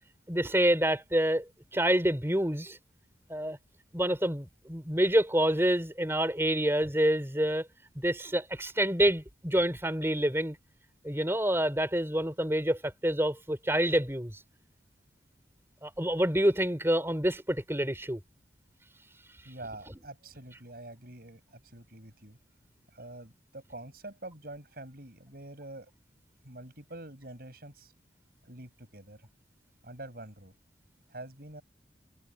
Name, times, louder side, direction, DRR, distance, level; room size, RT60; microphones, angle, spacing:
voice 1, 0.3-2.8 3.3-3.6 3.9-7.7 7.9-10.6 11.0-14.4 15.8-18.2, right 1 dB, 15° right, 4.5 m, -27 dB
voice 2, 19.4-22.4 22.9-25.9 26.4-27.9 28.4-29.3 29.8-30.5 31.1-31.6, right 1 dB, 55° right, 7.8 m, -46 dB
head